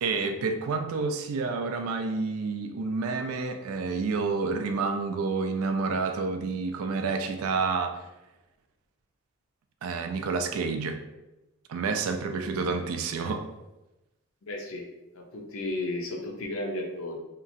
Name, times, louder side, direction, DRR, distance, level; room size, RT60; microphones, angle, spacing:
voice 1, 0.0-8.0 9.8-11.0 11.7-13.5, right 4 dB, 75° right, 6 dB, 0.3 m, -29 dB
voice 2, 14.4-14.8 15.1-17.2, left 2 dB, 65° left, 0 dB, 0.5 m, -33 dB
2.8 x 2.4 x 2.6 m, 1.0 s
head